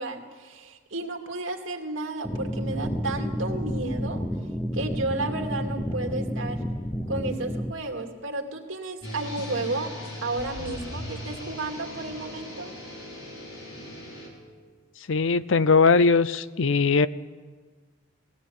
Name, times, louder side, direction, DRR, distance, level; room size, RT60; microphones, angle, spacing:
voice 1, 0.0-4.3 4.7-6.6 7.1-9.9 10.2-12.7, right 2 dB, 65° right, 3 dB, 2.5 m, -32 dB
sound 1, 2.2-7.7, equal, 10° left, 0.7 m, -30 dB
sound 2, 9.0-14.3, left 1 dB, 90° left, 5.9 m, -38 dB
voice 2, 15.1-17.1, left 4 dB, 70° left, 16 dB, 0.6 m, -20 dB
20.0 x 17.0 x 8.6 m, 1.4 s
head